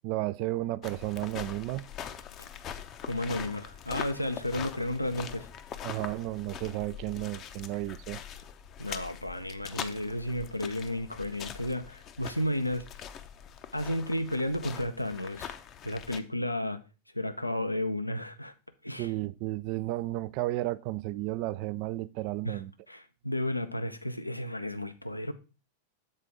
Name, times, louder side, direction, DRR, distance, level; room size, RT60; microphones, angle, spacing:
voice 1, 0.0-1.8 5.8-8.2 19.0-22.7, right 17 dB, 45° right, 0.3 m, -33 dB
sound 1, 0.8-16.2, left 9 dB, 35° left, 0.6 m, -43 dB
voice 2, 3.0-5.5 8.8-12.9 13.7-15.6 15.8-16.8 17.1-18.5 18.8-19.1 22.4-22.6 22.9-25.3, left 1 dB, 85° left, 0.6 m, -33 dB
7.5 x 4.1 x 4.8 m
figure-of-eight pair, 90°, 0 cm